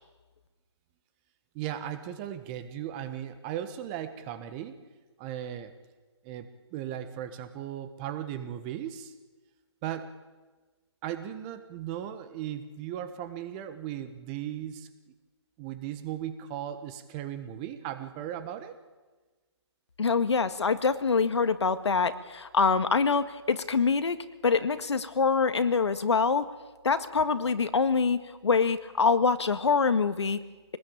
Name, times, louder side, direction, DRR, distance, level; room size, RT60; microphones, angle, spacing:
voice 1, 1.5-4.7 5.2-5.7 6.2-9.1 9.8-10.1 11.0-14.9 15.6-18.8, right 11 dB, 20° right, 10 dB, 1.3 m, -37 dB
voice 2, 20.0-24.2 24.4-26.5 26.8-30.4, left 5 dB, 70° left, 11 dB, 1.8 m, -25 dB
25.0 x 19.5 x 8.9 m, 1.3 s
hypercardioid pair, 160°, 15 cm